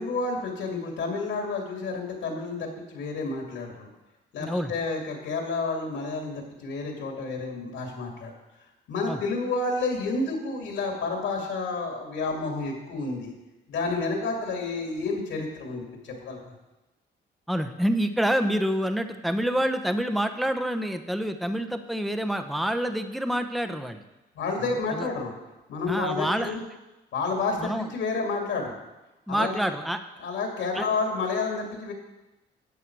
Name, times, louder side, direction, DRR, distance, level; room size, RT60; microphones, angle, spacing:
voice 1, 0.0-3.9 4.3-8.3 8.9-13.3 13.7-16.5 24.3-25.3 25.7-26.6 27.1-28.8 29.3-29.7 30.2-31.9, left 3 dB, 80° left, 1 dB, 2.5 m, -30 dB
voice 2, 4.4-4.7 9.1-9.2 17.5-24.0 24.6-25.1 25.9-26.5 27.6-27.9 29.3-30.0 30.7-30.9, equal, ahead, 8 dB, 0.8 m, -27 dB
12.0 x 8.0 x 4.7 m, 1.0 s
cardioid pair, 90°, 20 cm